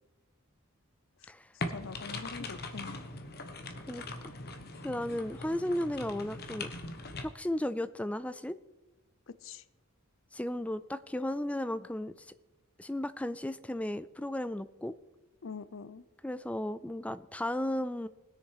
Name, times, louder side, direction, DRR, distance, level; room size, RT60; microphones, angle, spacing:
sound 1, 1.6-7.2, left 2 dB, 45° left, 1.1 m, -41 dB
voice 1, 1.7-3.0 9.3-9.6 15.4-16.0, left 5 dB, 60° left, 15 dB, 0.6 m, -44 dB
voice 2, 3.9-4.3 4.8-6.7 7.2-8.6 10.3-12.3 12.8-14.9 16.2-18.1, left 1 dB, 5° left, 14 dB, 0.3 m, -35 dB
20.0 x 6.7 x 4.8 m, 1.1 s
head